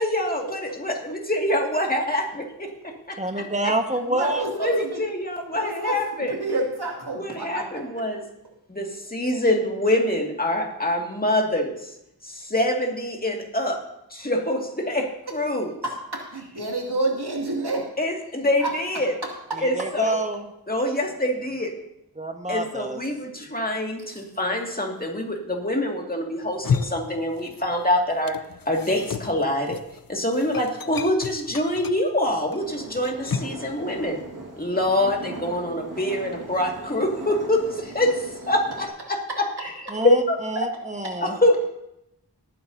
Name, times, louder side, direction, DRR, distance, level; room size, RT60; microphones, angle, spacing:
voice 1, 0.0-3.7 4.6-6.3 7.1-8.2 8.7-12.0 12.2-13.8 14.1-15.7 18.0-19.1 19.6-20.3 20.7-21.7 22.5-28.4 28.7-29.8 30.1-34.2 34.6-40.4 41.2-41.6, left 1 dB, 25° left, 1 dB, 2.1 m, -25 dB
voice 2, 3.2-4.5 19.6-20.4 22.2-23.0 39.9-40.2 40.5-41.3, right 2 dB, 20° right, 5 dB, 1.4 m, -27 dB
voice 3, 4.1-5.0 5.5-7.8 15.8-17.9 18.6-18.7, right 2 dB, 90° right, -1 dB, 2.5 m, -29 dB
sound 1, 26.4-27.8 28.1-33.7, left 6 dB, 65° left, 0.6 m, -32 dB
sound 2, 32.6-38.9, right 2 dB, 55° right, 2.0 m, -39 dB
19.0 x 9.6 x 2.7 m, 0.83 s
wide cardioid pair, 60°, 38 cm